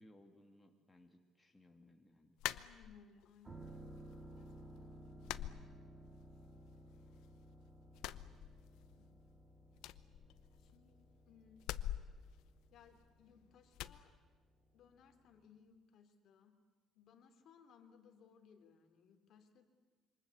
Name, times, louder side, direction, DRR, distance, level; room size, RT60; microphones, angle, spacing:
voice 1, 0.0-2.4, left 1 dB, 10° left, 3 dB, 2.3 m, -64 dB
sound 1, 2.4-3.3 3.7-4.4 4.6-4.8 5.2-6.4 6.7-7.5 7.9-9.1 9.3-9.4 9.7-10.9 11.6-13.2 13.7-14.0, left 13 dB, 85° left, 0.9 m, -46 dB
voice 2, 2.4-4.1 4.3-6.0 6.4-6.8 8.9-9.3 10.6-11.0 11.3-11.7 12.7-14.1 14.7-16.6 16.9-19.7, left 6 dB, 55° left, 6 dB, 3.3 m, -65 dB
sound 2, 3.4-15.0 15.3-15.4, right 1 dB, 15° right, 2.9 m, -57 dB
27.5 x 25.5 x 8.2 m, 1.4 s
cardioid pair, 145°, 0 cm